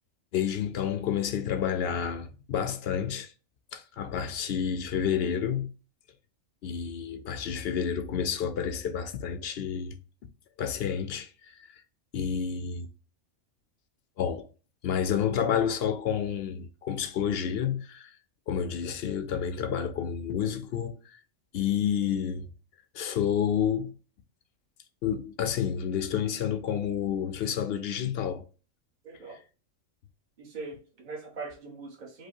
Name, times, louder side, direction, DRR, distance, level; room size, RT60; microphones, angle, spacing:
voice 1, 0.3-3.3 3.7-5.7 6.6-10.0 10.6-11.8 12.1-12.9 14.2-14.5 14.8-18.1 18.5-21.0 21.5-22.5 22.9-23.9 25.0-28.4, left 8 dB, 60° left, 0.7 m, -29 dB
voice 2, 29.0-29.4 30.4-32.3, right 4 dB, 40° right, 1.2 m, -41 dB
4.8 x 2.2 x 4.4 m
omnidirectional pair, 1.3 m